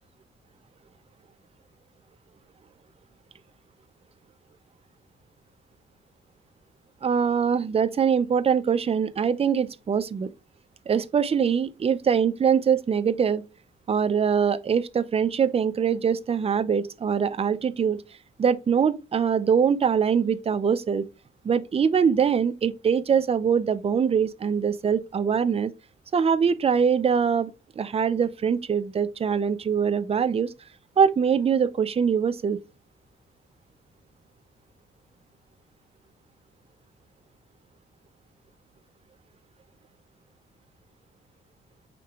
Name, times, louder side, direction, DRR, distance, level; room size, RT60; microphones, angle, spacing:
voice 1, 7.0-10.3 10.9-13.4 13.9-18.0 18.4-21.1 21.4-25.7 26.1-27.5 27.8-30.5 31.0-32.6, right 7 dB, 30° right, 0.4 m, -23 dB
5.1 x 3.3 x 2.9 m
cardioid pair, 85°, 21 cm